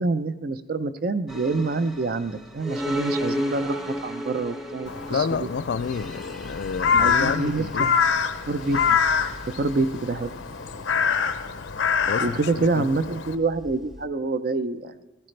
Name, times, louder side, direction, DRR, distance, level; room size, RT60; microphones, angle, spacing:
voice 1, 0.0-5.5 6.8-8.0 8.5-9.0 9.6-10.3 12.2-14.9, right 3 dB, 50° right, 0.5 m, -26 dB
Horror Dark Ambient, 1.3-14.1, equal, ahead, 0.6 m, -36 dB
Crow, 4.9-13.4, left 6 dB, 80° left, 0.7 m, -25 dB
voice 2, 5.1-7.9 12.1-12.5 12.8-12.9, left 6 dB, 60° left, 0.4 m, -29 dB
16.0 x 14.0 x 3.3 m
head